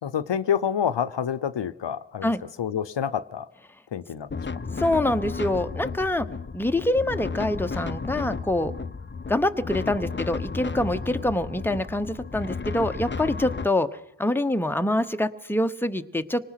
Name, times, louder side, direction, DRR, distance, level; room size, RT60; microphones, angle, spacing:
voice 1, 0.0-2.3 2.6-3.5 3.9-4.6, left 8 dB, 70° left, 13 dB, 0.9 m, -28 dB
sound 1, 4.3-13.7, left 4 dB, 25° left, 0.7 m, -33 dB
voice 2, 4.7-6.3 6.5-8.7 9.3-13.9 14.2-16.5, left 1 dB, 5° left, 9 dB, 1.0 m, -25 dB
25.5 x 19.5 x 5.9 m, 0.82 s
cardioid pair, 50°, 44 cm